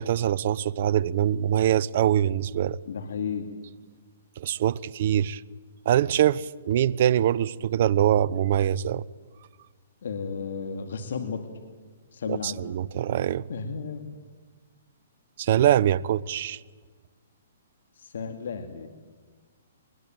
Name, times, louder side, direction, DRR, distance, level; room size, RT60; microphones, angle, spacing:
voice 1, 0.0-2.8 4.4-5.4 5.9-9.0 12.3-13.4 15.4-16.6, right 11 dB, 50° right, 0.7 m, -23 dB
voice 2, 2.9-3.5 10.0-11.4 12.1-12.6 13.5-14.1 18.0-18.9, left 5 dB, 70° left, 2.3 m, -33 dB
22.0 x 21.0 x 9.2 m
hypercardioid pair, 145°, 0 cm